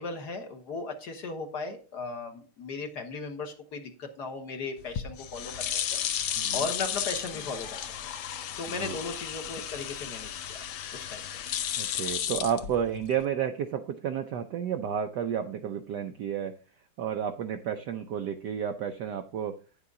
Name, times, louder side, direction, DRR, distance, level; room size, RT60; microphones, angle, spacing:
voice 1, 0.0-7.9 8.6-10.6 10.9-11.4, left 4 dB, 55° left, 4 dB, 1.6 m, -37 dB
sound 1, 4.8-13.2, left 9 dB, 70° left, 1.4 m, -34 dB
voice 2, 11.8-16.5 17.0-19.6, right 8 dB, 75° right, 7 dB, 1.0 m, -31 dB
9.8 x 6.8 x 3.6 m, 0.37 s
omnidirectional pair, 2.4 m